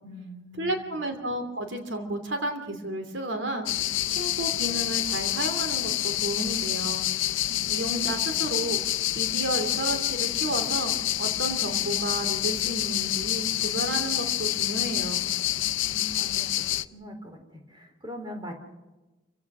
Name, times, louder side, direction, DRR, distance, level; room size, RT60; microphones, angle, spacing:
voice 1, 0.0-1.0 7.5-7.6 15.5-16.5 16.9-17.4 17.7-18.5, equal, 25° right, 4 dB, 3.7 m, -42 dB
voice 2, 0.6-3.7 4.1-7.1 7.7-8.8 9.1-15.2, right 1 dB, 70° right, 6 dB, 2.8 m, -32 dB
sound 1, 3.7-16.9, left 14 dB, 80° left, 0.7 m, -27 dB
28.5 x 16.0 x 6.1 m, 1.1 s
head